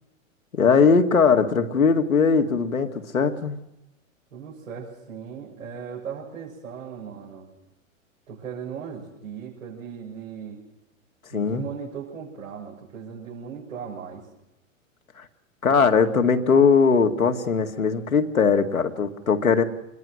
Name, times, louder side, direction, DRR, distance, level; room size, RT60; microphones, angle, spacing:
voice 1, 0.5-3.6 11.3-11.6 15.2-15.3 15.6-19.6, left 5 dB, 85° left, 7 dB, 2.1 m, -20 dB
voice 2, 4.3-7.5 8.3-10.6 11.3-14.3, right 7 dB, 75° right, -5 dB, 7.3 m, -37 dB
27.0 x 21.5 x 6.4 m, 0.92 s
figure-of-eight pair, 100°, 40 cm